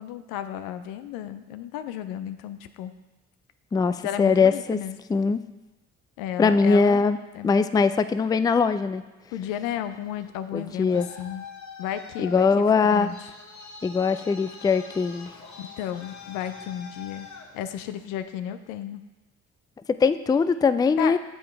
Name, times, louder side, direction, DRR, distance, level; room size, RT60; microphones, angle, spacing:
voice 1, 0.0-2.9 4.0-5.0 6.2-7.1 7.3-7.6 9.3-10.9 11.2-11.4 11.8-13.3 15.6-17.3 17.5-19.0 21.0-21.2, left 10 dB, 80° left, 11 dB, 0.6 m, -33 dB
voice 2, 3.7-4.8 5.1-5.4 6.4-7.2 7.4-9.0 10.5-11.1 12.2-13.1 13.8-15.3 19.9-21.2, left 5 dB, 10° left, 12 dB, 0.3 m, -21 dB
Traffic noise roadway noise, 10.5-18.2, left 5 dB, 55° left, 1.4 m, -44 dB
7.6 x 5.4 x 4.6 m, 1.1 s
hypercardioid pair, 50°, 33 cm